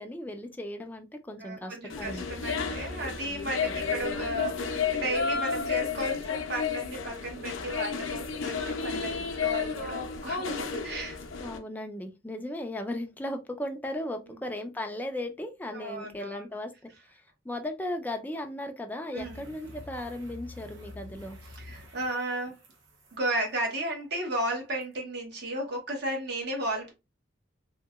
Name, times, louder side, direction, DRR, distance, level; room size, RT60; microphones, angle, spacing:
voice 1, 0.0-2.3 11.4-16.7 17.4-21.4, left 1 dB, 10° left, 0.4 m, -36 dB
voice 2, 1.4-11.2 14.3-14.4 15.7-16.4 19.1-19.4 21.5-22.6 23.1-26.9, right 1 dB, 60° right, 1.1 m, -34 dB
sound 1, 1.9-11.6, left 6 dB, 85° left, 0.5 m, -32 dB
sound 2, 19.2-23.2 24.8-24.9, left 2 dB, 75° right, 0.7 m, -48 dB
2.8 x 2.8 x 2.3 m
head